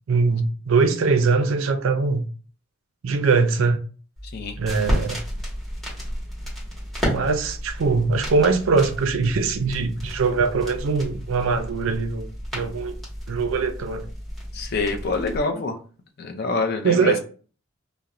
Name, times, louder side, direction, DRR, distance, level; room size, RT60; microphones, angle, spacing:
voice 1, 0.1-2.3 3.0-3.8 4.6-5.2 7.0-12.3 12.5-13.0 13.3-14.0 16.8-17.2, right 4 dB, 75° right, 0.4 m, -22 dB
sound 1, 4.2-15.4, equal, ahead, 1.0 m, -32 dB
voice 2, 14.5-15.8 16.2-17.2, left 3 dB, 50° left, 0.4 m, -26 dB
2.4 x 2.0 x 2.9 m
head